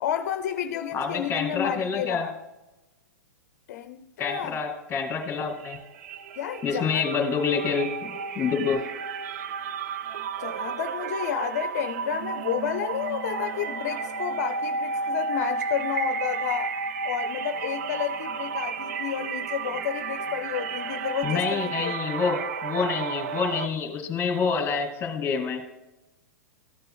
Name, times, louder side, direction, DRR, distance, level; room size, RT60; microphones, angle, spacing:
voice 1, 0.0-2.3 3.7-4.6 6.4-7.0 10.4-16.7 17.0-21.9, left 9 dB, 60° left, 0.6 m, -31 dB
voice 2, 0.9-2.3 4.2-5.8 6.6-8.8 21.2-25.6, left 5 dB, 20° left, 2.2 m, -27 dB
sound 1, 5.2-5.3 5.6-23.7, right 5 dB, 65° right, 0.5 m, -32 dB
14.0 x 6.6 x 2.3 m
hypercardioid pair, 115°, 9 cm